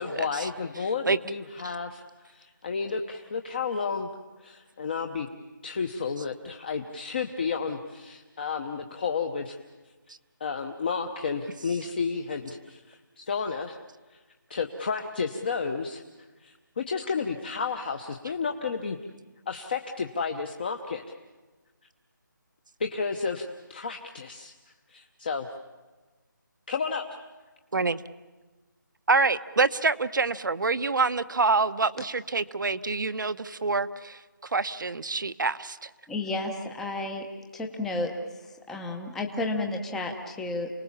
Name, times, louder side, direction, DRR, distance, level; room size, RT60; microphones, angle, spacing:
voice 1, 0.0-2.0 2.3-4.1 4.4-5.3 5.6-9.6 10.4-13.8 14.1-14.2 14.5-16.0 16.4-19.0 19.5-21.0 22.8-24.5 24.9-25.5 26.7-27.0, left 5 dB, 30° left, 4 dB, 0.9 m, -31 dB
voice 2, 29.1-35.9, right 4 dB, 70° right, 12 dB, 1.0 m, -26 dB
voice 3, 36.1-37.2 37.5-38.1 38.4-40.7, left 2 dB, 5° left, 3 dB, 0.7 m, -32 dB
28.5 x 19.0 x 7.2 m, 1.2 s
figure-of-eight pair, 170°, 11 cm